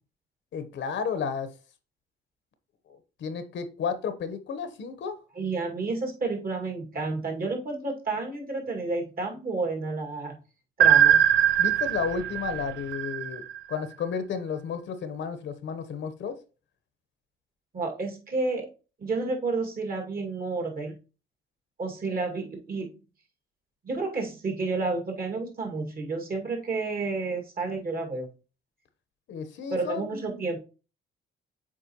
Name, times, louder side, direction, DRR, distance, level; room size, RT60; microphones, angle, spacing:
voice 1, 0.5-1.5 2.9-5.2 11.6-13.4 13.7-16.3 29.3-30.4, left 6 dB, 70° left, 0.9 m, -32 dB
voice 2, 5.4-10.4 10.8-11.2 17.7-18.7 19.0-20.9 21.8-22.9 23.8-28.3 29.7-30.6, right 3 dB, 45° right, 2.1 m, -30 dB
sound 1, 10.8-13.7, right 9 dB, 65° right, 0.4 m, -21 dB
7.4 x 4.5 x 2.9 m
cardioid pair, 90°, 20 cm